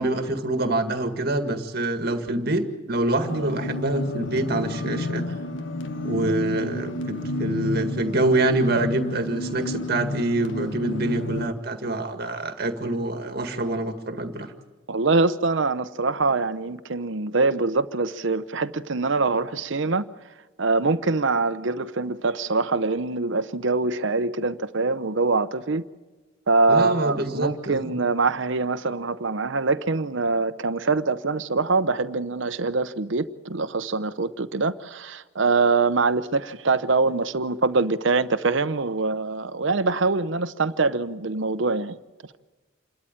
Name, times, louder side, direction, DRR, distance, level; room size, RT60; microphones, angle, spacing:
voice 1, 0.0-5.3 6.0-14.5 26.7-27.9, right 2 dB, 50° right, 1.9 m, -26 dB
sound 1, 3.2-11.5, left 2 dB, 65° left, 1.4 m, -31 dB
voice 2, 14.9-20.1 20.6-25.8 26.5-42.0, right 3 dB, 70° right, 0.8 m, -24 dB
28.0 x 13.0 x 8.9 m
head